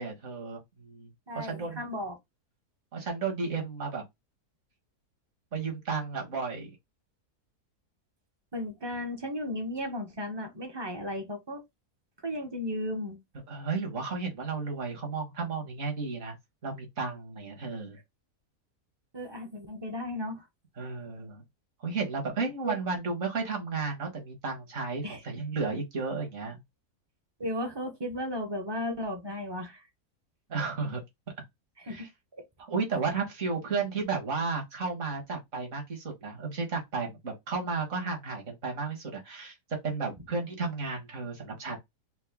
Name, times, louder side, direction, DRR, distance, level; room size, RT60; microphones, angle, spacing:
voice 1, 0.0-1.1 1.4-1.8 2.9-4.0 5.5-6.7 13.5-16.4 16.6-18.0 20.8-21.4 21.8-26.6 30.5-31.0 31.9-32.1 32.7-39.6 39.8-41.8, right 4 dB, 50° right, 1.7 m, -33 dB
voice 2, 1.3-2.2 8.5-11.6 12.2-13.2 19.1-20.5 22.6-22.8 25.0-25.2 27.4-29.9 31.8-32.1, left 1 dB, 25° right, 0.6 m, -35 dB
4.5 x 2.1 x 3.5 m
omnidirectional pair, 1.7 m